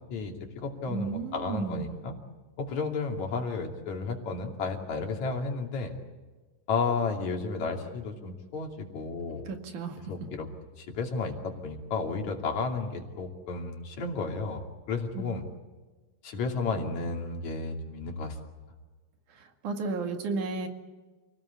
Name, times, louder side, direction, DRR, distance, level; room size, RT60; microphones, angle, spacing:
voice 1, 0.1-2.2 2.6-5.9 6.7-9.5 10.1-10.5 10.8-14.6 14.9-15.4 16.2-18.4, left 4 dB, 55° left, 2 dB, 3.9 m, -32 dB
voice 2, 0.9-2.0 9.5-10.1 15.2-15.4 19.4-20.7, right 4 dB, 60° right, 5 dB, 3.4 m, -33 dB
29.0 x 19.0 x 8.5 m, 1.3 s
omnidirectional pair, 4.1 m